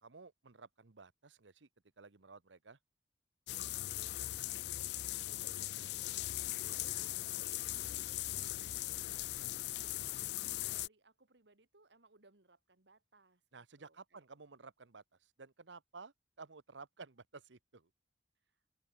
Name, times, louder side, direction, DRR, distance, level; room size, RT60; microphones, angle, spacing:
voice 1, 0.0-1.7 2.0-2.8 13.5-17.9, right 4 dB, 90° right, 1.1 m, -54 dB
sound 1, 3.5-10.9, left 15 dB, 65° left, 0.4 m, -39 dB
voice 2, 4.0-9.3 9.8-10.3 10.5-13.4 13.8-14.3 18.4-18.6, right 3 dB, 70° right, 2.2 m, -68 dB
open air
head